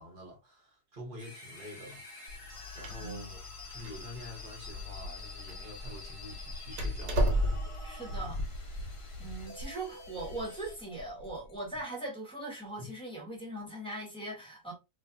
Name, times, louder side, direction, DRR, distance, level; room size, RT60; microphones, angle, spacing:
voice 1, 0.0-2.0 2.7-3.4 3.7-7.5 12.8-12.9, left 1 dB, 40° right, 0.9 m, -47 dB
sound 1, 1.2-10.8, left 2 dB, 45° left, 0.4 m, -49 dB
Door, 2.3-7.9, equal, 85° right, 1.3 m, -34 dB
voice 2, 2.9-3.3 7.8-8.4 8.8-8.9 9.2-14.7, right 2 dB, 5° left, 0.8 m, -40 dB
sound 2, 4.4-11.8, left 1 dB, 70° left, 1.0 m, -44 dB
2.5 x 2.4 x 2.5 m
omnidirectional pair, 1.7 m